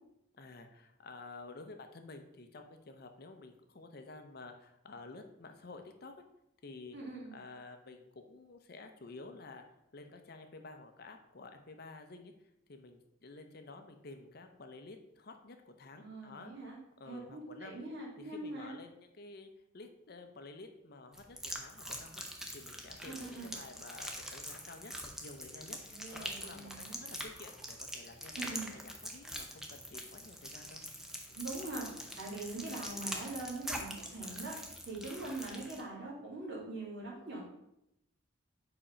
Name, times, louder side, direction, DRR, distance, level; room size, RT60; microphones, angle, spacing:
voice 1, 0.4-6.2 6.6-7.0 7.3-9.6 9.9-12.3 12.7-16.5 17.0-17.8 18.2-22.2 22.5-25.8 26.1-30.8, left 3 dB, 50° left, 6 dB, 0.6 m, -51 dB
voice 2, 6.9-7.3 15.9-16.8 17.1-18.8 23.1-23.5 25.9-27.0 28.4-28.6 31.3-31.9 32.2-34.5 34.9-37.4, right 2 dB, 60° right, -4 dB, 2.1 m, -43 dB
sound 1, 21.1-35.8, equal, 5° right, 0.6 m, -44 dB
4.9 x 4.3 x 5.0 m, 0.83 s
head